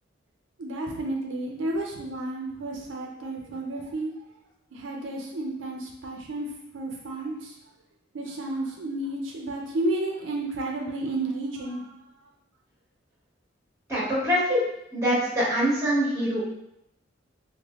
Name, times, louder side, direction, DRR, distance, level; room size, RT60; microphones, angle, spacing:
voice 1, 0.6-4.1 4.7-6.5 6.7-7.6 8.1-11.9, right 2 dB, 80° right, 0 dB, 0.5 m, -31 dB
voice 2, 13.9-14.6 14.9-16.4, equal, 15° right, -7 dB, 1.2 m, -24 dB
4.9 x 2.1 x 2.3 m, 0.81 s
head